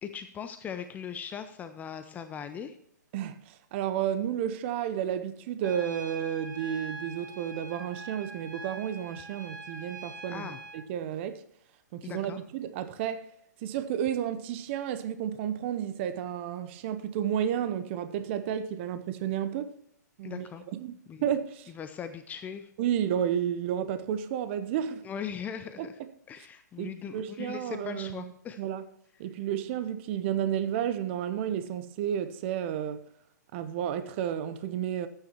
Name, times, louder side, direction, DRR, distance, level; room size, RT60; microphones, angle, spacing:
voice 1, 0.0-2.7 10.3-10.6 12.0-12.4 20.2-20.7 21.1-21.3 21.7-22.7 25.0-26.0 26.3-28.6, left 7 dB, 15° left, 0.6 m, -39 dB
voice 2, 3.1-11.4 11.9-13.2 13.6-19.7 20.2-20.5 20.7-21.7 22.8-25.0 25.8-25.9 26.8-28.3 28.6-28.8 29.2-33.0 33.5-35.1, right 9 dB, 40° right, 0.7 m, -32 dB
Trumpet, 5.6-10.8, right 3 dB, 80° right, 2.3 m, -43 dB
13.5 x 9.0 x 3.0 m
hypercardioid pair, 125°, 10 cm